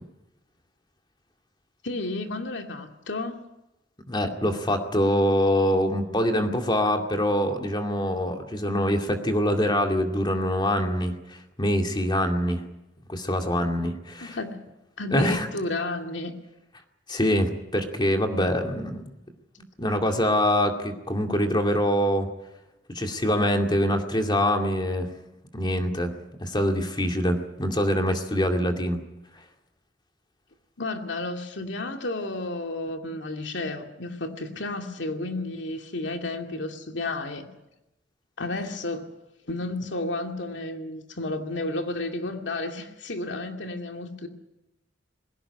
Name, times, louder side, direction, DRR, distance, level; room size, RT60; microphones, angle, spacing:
voice 1, 1.8-3.4 14.2-14.6 15.0-16.3 30.8-37.5 38.4-39.1 39.5-44.3, left 2 dB, 75° left, 4 dB, 2.4 m, -32 dB
voice 2, 4.1-12.6 13.1-14.4 15.1-15.5 17.1-19.1 19.8-22.3 22.9-25.1 25.5-29.0, equal, 25° left, 4 dB, 2.3 m, -24 dB
20.5 x 17.0 x 9.8 m, 0.92 s
head